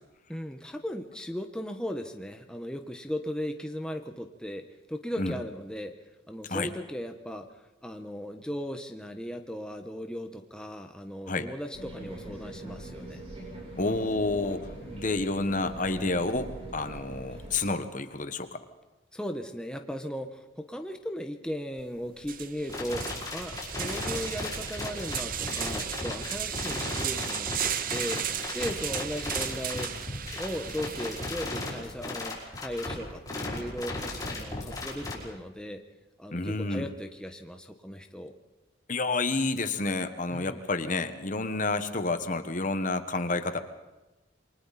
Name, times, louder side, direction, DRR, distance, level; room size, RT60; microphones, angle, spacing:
voice 1, 0.3-5.9 6.3-7.5 7.8-13.2 14.8-15.0 19.1-30.1 30.3-35.8 36.2-38.3 40.3-40.6, equal, 5° left, 5 dB, 1.0 m, -37 dB
sound 1, 11.7-17.6, right 1 dB, 30° right, 7.7 m, -42 dB
voice 2, 13.7-18.6 36.3-36.9 38.9-43.6, left 3 dB, 45° left, 9 dB, 1.4 m, -29 dB
sound 2, 21.8-21.9 22.2-31.8, right 10 dB, 45° right, 0.8 m, -35 dB
sound 3, 22.7-35.1, left 2 dB, 20° left, 5.5 m, -35 dB
28.0 x 23.5 x 4.2 m, 1.1 s
head